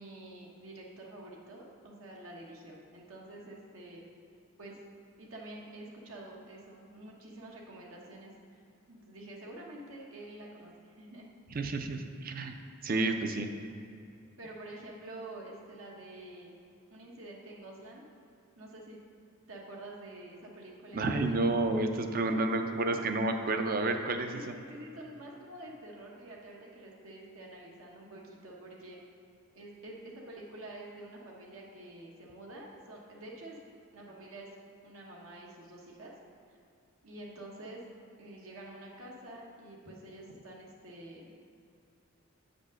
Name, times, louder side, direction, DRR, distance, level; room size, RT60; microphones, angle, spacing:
voice 1, 0.0-4.0 4.6-4.8 5.2-8.6 8.9-11.3 14.4-16.5 16.9-18.0 18.6-19.0 19.5-21.5 22.2-23.1 24.3-29.0 29.5-33.6 33.9-34.5 34.8-36.1 36.5-36.6 37.0-37.8 38.2-41.3, right 1 dB, 75° right, -2 dB, 1.2 m, -48 dB
voice 2, 11.5-12.5 12.8-13.5 20.9-24.5, right 2 dB, 40° right, 6 dB, 0.6 m, -30 dB
7.9 x 5.2 x 6.3 m, 2.6 s
head